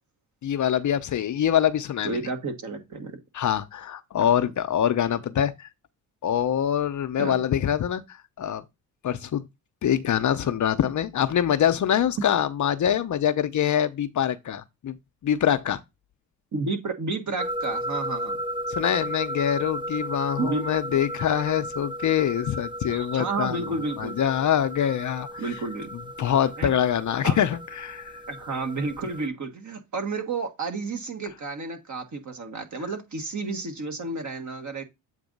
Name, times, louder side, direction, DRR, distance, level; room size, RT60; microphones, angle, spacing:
voice 1, 0.4-2.2 3.3-5.7 6.2-8.6 9.0-9.4 9.8-15.0 15.2-15.8 18.7-25.4 26.2-28.2, left 9 dB, 45° left, 0.7 m, -24 dB
voice 2, 2.0-3.2 4.2-4.3 7.2-7.4 12.2-12.3 16.5-18.4 20.4-21.0 22.9-24.2 25.4-25.9 26.6-26.7 27.2-27.3 28.3-34.8, right 3 dB, 45° right, 1.6 m, -31 dB
sound 1, 17.4-29.3, equal, 10° right, 0.5 m, -35 dB
7.9 x 2.7 x 5.3 m
supercardioid pair, 70°, 41 cm